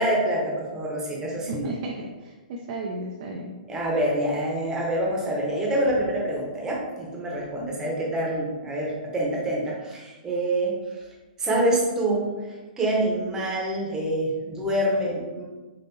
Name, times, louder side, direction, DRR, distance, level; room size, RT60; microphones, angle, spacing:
voice 1, 0.0-1.7 3.7-11.0 11.4-15.4, right 1 dB, 10° right, -3 dB, 0.9 m, -26 dB
voice 2, 1.5-3.5 7.6-7.7, right 2 dB, 40° right, -1 dB, 0.5 m, -34 dB
5.5 x 2.6 x 2.7 m, 1.2 s
hypercardioid pair, 155°, 5 cm